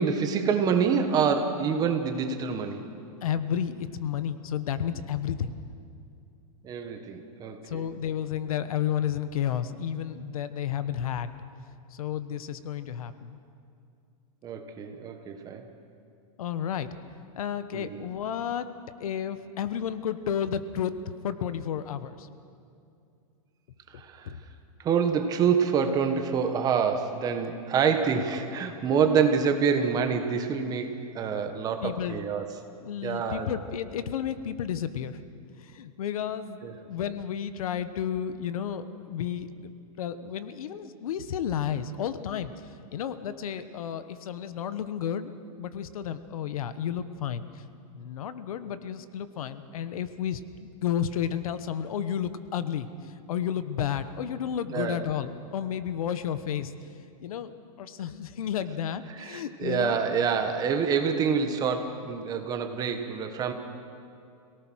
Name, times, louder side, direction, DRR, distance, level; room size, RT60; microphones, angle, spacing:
voice 1, 0.0-2.8 6.6-7.8 14.4-15.6 17.7-18.0 23.9-24.3 24.8-32.6 33.0-33.5 36.6-36.7 54.7-55.1 59.1-63.5, right 6 dB, 20° right, 6 dB, 1.4 m, -27 dB
voice 2, 3.2-5.5 7.7-11.4 11.9-13.4 16.4-16.9 17.4-18.7 19.0-20.9 21.2-22.3 23.9-24.4 31.8-32.3 32.8-35.2 35.6-45.3 45.6-47.6 47.9-56.7 57.2-60.0, left 9 dB, 75° left, 12 dB, 1.2 m, -32 dB
26.5 x 18.0 x 6.3 m, 2.5 s
supercardioid pair, 160°, 18 cm